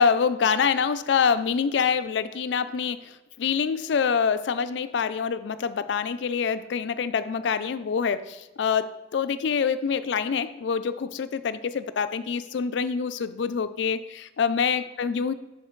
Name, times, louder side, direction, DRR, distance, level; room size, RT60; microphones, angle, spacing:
voice 1, 0.0-3.0 3.4-15.3, left 6 dB, 70° left, 13 dB, 0.4 m, -25 dB
7.3 x 6.3 x 3.1 m, 1.1 s
head